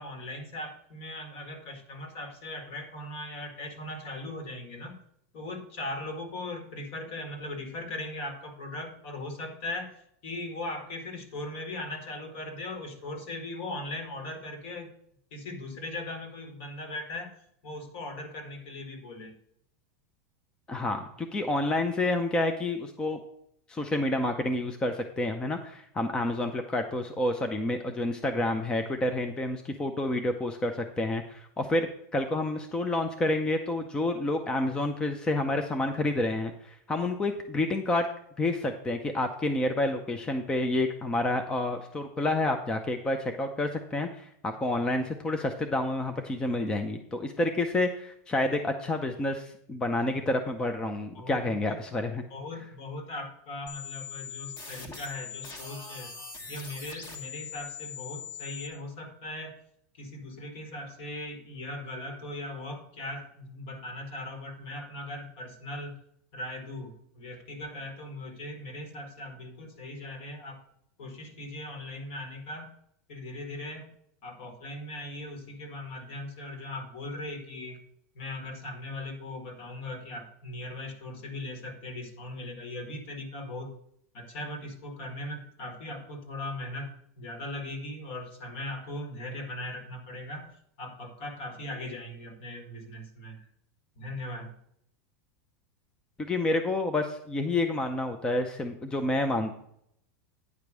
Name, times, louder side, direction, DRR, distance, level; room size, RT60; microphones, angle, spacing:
voice 1, 0.0-5.0 5.3-9.9 10.2-14.9 15.3-17.3 17.6-19.4 50.1-50.2 51.2-51.7 52.3-56.1 56.5-59.6 59.9-66.0 66.3-70.6 71.0-72.7 73.1-73.9 74.2-77.8 78.1-83.7 84.1-90.5 90.8-93.4 94.0-94.6, left 1 dB, 45° left, 5 dB, 1.8 m, -39 dB
voice 2, 20.7-23.2 23.7-38.1 38.4-52.2 96.2-99.5, left 2 dB, 10° left, 6 dB, 0.5 m, -29 dB
sound 1, 53.7-58.7, left 6 dB, 30° left, 1.5 m, -42 dB
9.5 x 5.1 x 6.1 m, 0.71 s
supercardioid pair, 165°, 9 cm